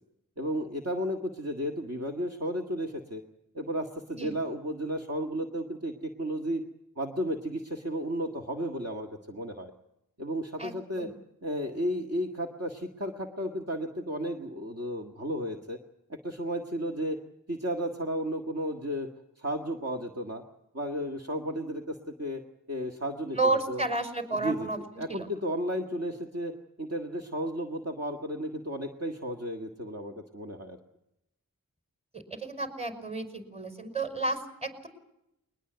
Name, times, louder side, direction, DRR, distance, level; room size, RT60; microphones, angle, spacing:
voice 1, 0.4-3.2 3.5-6.6 7.0-9.7 10.2-11.1 11.4-15.8 16.1-17.2 17.5-19.1 19.4-20.4 20.7-22.4 22.7-23.8 24.3-26.5 26.8-30.8, equal, 45° right, 2 dB, 1.9 m, -33 dB
voice 2, 23.4-24.8 25.1-25.3 32.1-34.9, right 2 dB, 20° right, 8 dB, 5.4 m, -31 dB
21.5 x 20.5 x 8.1 m, 0.84 s
wide cardioid pair, 50°, 34 cm